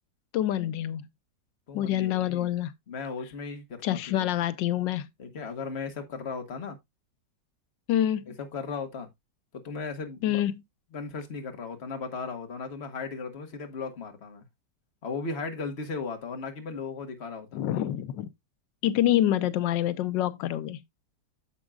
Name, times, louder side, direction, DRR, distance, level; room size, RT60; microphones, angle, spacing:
voice 1, 0.3-1.0 1.7-2.7 3.8-5.1 7.9-8.4 10.2-10.6 17.5-18.3 18.8-20.8, left 12 dB, 90° left, 1.4 m, -26 dB
voice 2, 1.7-2.5 2.9-4.3 5.2-6.8 8.4-9.1 9.5-10.4 10.9-14.4 15.0-17.6, left 4 dB, 40° left, 1.6 m, -36 dB
10.0 x 7.2 x 2.3 m
omnidirectional pair, 1.9 m